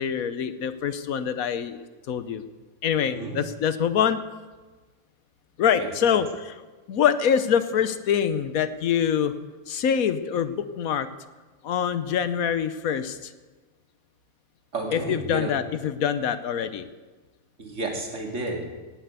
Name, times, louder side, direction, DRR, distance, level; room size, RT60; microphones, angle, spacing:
voice 1, 0.0-1.8 2.1-2.4 2.8-4.2 5.6-6.5 6.9-9.3 9.7-11.1 11.6-13.3 14.9-16.9, left 8 dB, 70° left, 12 dB, 1.3 m, -25 dB
voice 2, 3.0-3.4 5.8-5.9 14.7-15.5 17.6-18.7, right 2 dB, 50° right, 1 dB, 2.7 m, -31 dB
18.0 x 7.7 x 8.2 m, 1.3 s
omnidirectional pair, 1.6 m